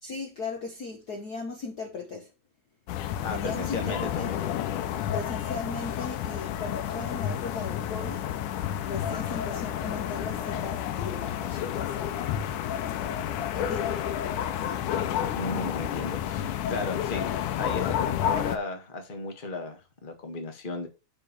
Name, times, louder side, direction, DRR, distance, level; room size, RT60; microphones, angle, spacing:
voice 1, 0.0-2.3 3.3-4.3 5.1-12.4 13.4-14.0 14.5-14.9, left 4 dB, 65° left, 0.9 m, -38 dB
sound 1, 2.9-18.6, left 10 dB, 90° left, 2.3 m, -30 dB
voice 2, 3.2-4.4 15.3-17.3 17.6-20.9, left 2 dB, 30° left, 1.0 m, -35 dB
7.2 x 5.3 x 5.6 m
omnidirectional pair, 3.4 m